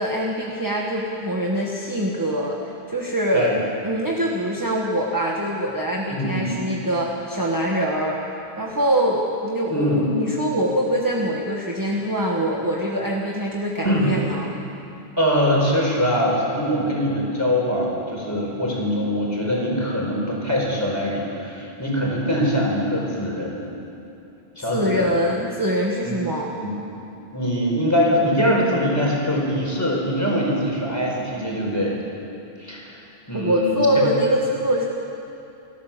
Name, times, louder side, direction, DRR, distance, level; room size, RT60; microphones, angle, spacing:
voice 1, 0.0-3.6 3.8-14.5 24.6-26.5 33.3-34.8, equal, 20° right, -2 dB, 1.6 m, -24 dB
voice 2, 6.1-6.5 9.7-10.0 13.8-14.1 15.2-23.6 24.6-25.2 26.0-26.1 26.6-26.7 27.3-32.0 32.6-33.0 33.3-33.8, equal, 15° left, -3 dB, 4.8 m, -23 dB
29.0 x 12.5 x 7.5 m, 2.8 s
omnidirectional pair, 1.1 m